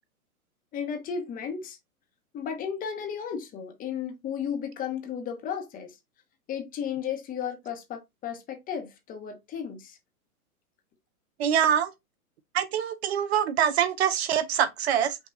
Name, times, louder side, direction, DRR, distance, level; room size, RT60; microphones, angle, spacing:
voice 1, 0.7-1.8 2.3-6.0 6.5-10.0, left 7 dB, 20° left, 0.9 m, -34 dB
voice 2, 11.4-11.9 12.5-15.2, right 9 dB, 45° right, 0.6 m, -24 dB
5.6 x 2.3 x 3.9 m
hypercardioid pair, 130°, 44 cm